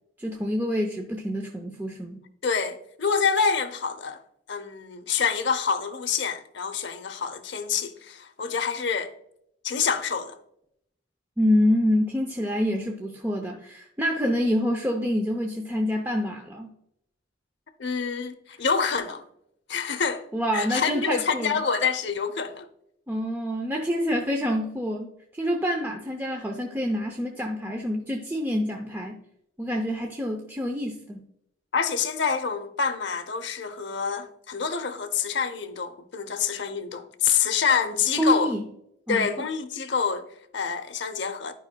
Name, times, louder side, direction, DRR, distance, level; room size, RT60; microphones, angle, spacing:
voice 1, 0.2-2.2 11.4-16.7 20.3-21.6 23.1-29.2 29.6-31.2 38.2-38.6 39.1-39.3, equal, 10° right, 0.5 m, -27 dB
voice 2, 2.4-4.2 4.5-9.1 9.6-10.4 17.8-19.2 19.7-20.3 20.5-22.6 31.7-38.5 39.1-41.5, left 6 dB, 60° left, 0.7 m, -27 dB
11.5 x 5.2 x 2.2 m
head